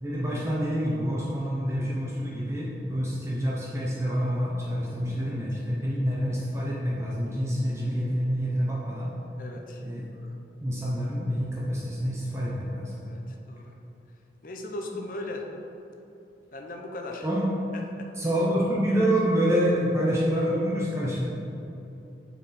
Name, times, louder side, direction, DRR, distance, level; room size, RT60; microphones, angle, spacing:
voice 1, 0.0-9.1 9.8-10.0 10.6-13.0 17.2-17.5 18.2-21.3, equal, 15° right, -5 dB, 0.6 m, -27 dB
voice 2, 9.4-9.8 10.2-10.3 13.0-13.8 14.4-15.5 16.5-17.3 17.7-18.1, left 2 dB, 50° left, 2 dB, 0.6 m, -38 dB
6.2 x 4.6 x 4.1 m, 2.9 s
head